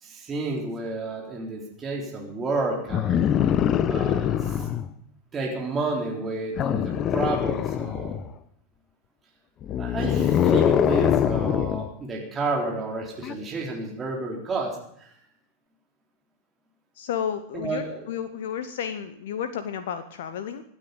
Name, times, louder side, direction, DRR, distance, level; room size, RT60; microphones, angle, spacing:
voice 1, 0.0-3.2 3.9-4.9 5.3-8.2 9.8-15.1 17.5-18.0, right 2 dB, 20° right, -1 dB, 3.8 m, -31 dB
sound 1, 2.9-4.9 6.6-8.3 9.6-11.9 13.2-13.3, left 9 dB, 30° left, 0.9 m, -23 dB
voice 2, 17.0-20.6, left 8 dB, 55° left, 11 dB, 1.0 m, -32 dB
25.0 x 9.0 x 5.3 m, 0.70 s
figure-of-eight pair, 90°, 0 cm